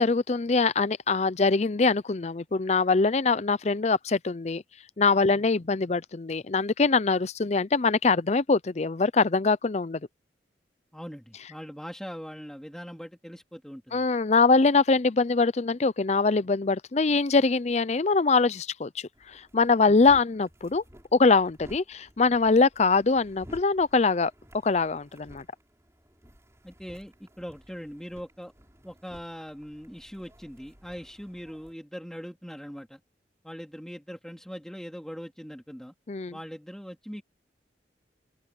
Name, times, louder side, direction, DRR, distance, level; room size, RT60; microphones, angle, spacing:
voice 1, 0.0-4.6 5.0-10.0 13.9-18.9 19.3-20.8 21.1-24.3 24.6-25.4 36.1-36.3, left 4 dB, 40° left, 0.5 m, -23 dB
voice 2, 10.9-14.0 26.6-28.5 28.8-33.0 33.4-35.9 36.3-37.2, equal, 5° left, 2.9 m, -41 dB
sound 1, 19.1-31.7, equal, 15° right, 5.3 m, -54 dB
head